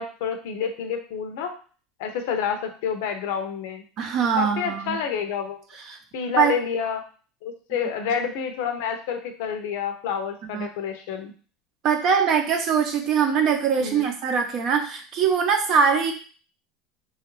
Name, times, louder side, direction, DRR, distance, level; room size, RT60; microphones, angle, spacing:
voice 1, 0.0-1.5 2.0-3.8 4.4-5.6 6.1-7.0 7.4-11.3 13.8-14.1, left 7 dB, 75° left, 6 dB, 0.5 m, -28 dB
voice 2, 4.0-5.0 5.9-6.0 6.4-6.6 10.5-10.7 11.8-16.1, right 6 dB, 45° right, 4 dB, 0.6 m, -22 dB
3.0 x 2.3 x 3.0 m, 0.39 s
supercardioid pair, 130°, 0 cm